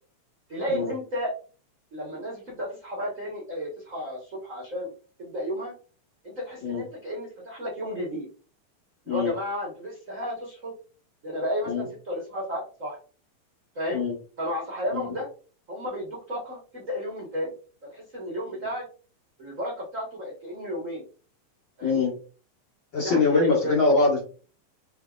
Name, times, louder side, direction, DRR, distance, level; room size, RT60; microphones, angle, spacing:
voice 1, 0.5-1.3 1.9-4.9 5.2-5.7 6.2-8.3 9.1-10.7 11.2-13.0 13.7-14.0 14.4-15.3 15.7-17.5 17.9-18.8 19.4-21.0 21.8-22.1 22.9-23.7, equal, 70° right, -3 dB, 0.7 m, -33 dB
voice 2, 21.8-22.2 22.9-24.2, left 4 dB, 45° left, -3 dB, 1.8 m, -23 dB
6.5 x 3.4 x 2.4 m, 0.37 s
omnidirectional pair, 3.8 m